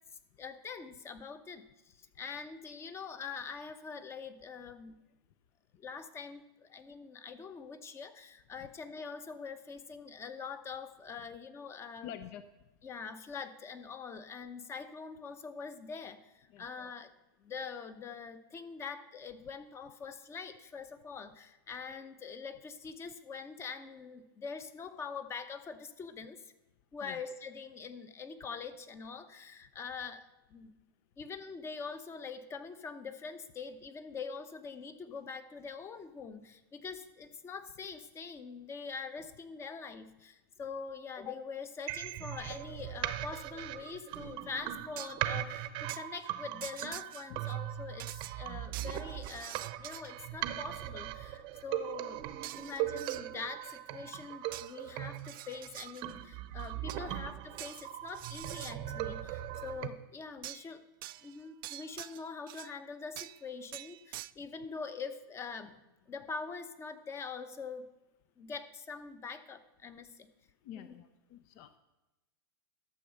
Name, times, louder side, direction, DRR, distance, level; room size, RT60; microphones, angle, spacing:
voice 1, 0.4-5.0 5.8-12.1 12.8-17.1 17.4-26.5 26.9-30.8 31.2-48.1 48.4-60.8 61.2-65.8 66.1-67.9 68.4-70.3 70.7-70.9, left 5 dB, 20° left, 12 dB, 0.8 m, -44 dB
voice 2, 12.0-12.4 16.5-16.6 27.0-27.2 47.3-47.4 70.6-71.7, left 11 dB, 50° left, 12 dB, 0.6 m, -47 dB
sound 1, 41.9-59.9, right 13 dB, 40° right, 0.8 m, -39 dB
sound 2, 45.0-45.3 45.9-46.0 46.6-47.6 48.0-50.3 52.4-53.3 54.5-54.8 55.2-56.1 56.6-57.1 57.6-58.8 60.4-60.7 61.0-62.8 63.2-63.4 63.7-64.3, right 16 dB, 70° right, 0.4 m, -46 dB
12.0 x 7.0 x 6.6 m, 1.0 s
supercardioid pair, 130°, 12 cm